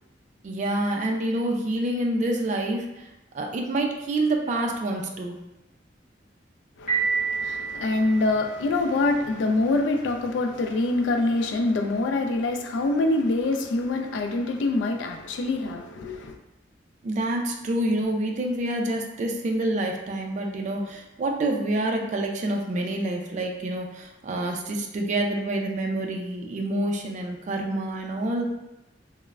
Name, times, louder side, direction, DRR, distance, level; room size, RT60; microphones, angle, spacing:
voice 1, 0.4-3.1 3.3-5.4 17.0-28.5, right 1 dB, 40° right, 0.3 m, -27 dB
voice 2, 6.8-16.4, left 2 dB, 80° left, 0.3 m, -25 dB
Piano, 6.9-8.8, right 5 dB, 45° left, 1.3 m, -29 dB
3.1 x 2.0 x 2.3 m
head